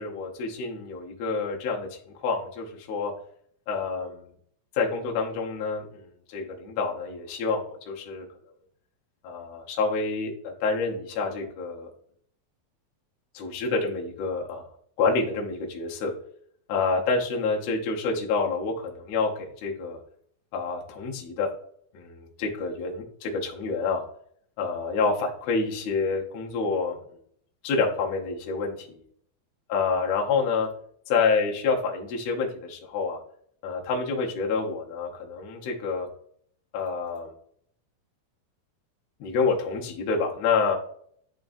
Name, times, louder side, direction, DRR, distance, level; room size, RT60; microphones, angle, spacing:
voice 1, 0.0-1.9 2.1-3.1 3.7-4.3 4.7-8.2 9.2-11.9 13.3-14.7 15.0-16.1 16.7-20.0 20.5-21.5 21.9-24.0 24.6-27.0 27.6-29.0 29.7-30.7 31.1-33.2 33.6-36.1 36.7-37.3 39.2-40.8, left 4 dB, 75° left, -1 dB, 1.5 m, -28 dB
10.0 x 3.6 x 2.6 m, 0.64 s
omnidirectional pair, 4.2 m